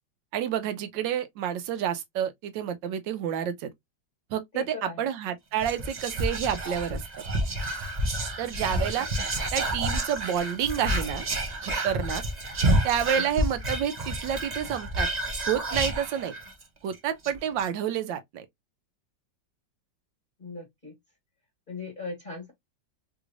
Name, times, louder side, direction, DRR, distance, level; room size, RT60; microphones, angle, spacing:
voice 1, 0.3-3.7 4.3-4.6 5.0-7.0 8.4-9.1 9.5-11.3 11.6-12.2 12.8-15.1 15.4-16.3 16.8-18.5, right 9 dB, 80° right, 1.3 m, -29 dB
voice 2, 4.5-5.1 13.1-13.4 20.4-20.9 21.7-22.5, left 3 dB, 30° left, 1.5 m, -39 dB
Whispering, 5.6-16.6 16.9-17.0 17.2-17.7, right 1 dB, 60° right, 0.4 m, -29 dB
3.4 x 3.1 x 2.4 m
omnidirectional pair, 1.9 m